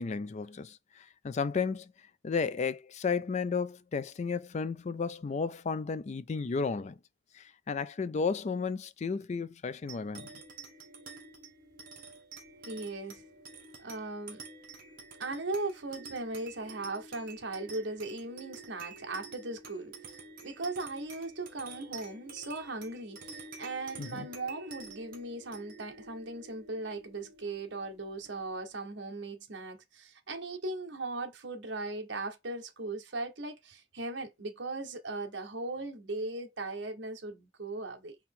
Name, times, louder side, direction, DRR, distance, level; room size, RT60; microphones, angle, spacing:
voice 1, 0.0-1.9 2.2-7.0 7.3-10.3 24.0-24.3, left 5 dB, 35° left, 0.4 m, -33 dB
sound 1, 9.9-28.7, right 4 dB, 50° right, 1.5 m, -49 dB
voice 2, 12.6-13.2 13.8-14.4 15.2-20.2 20.4-38.2, right 2 dB, 70° right, 1.1 m, -38 dB
4.3 x 2.9 x 3.7 m
head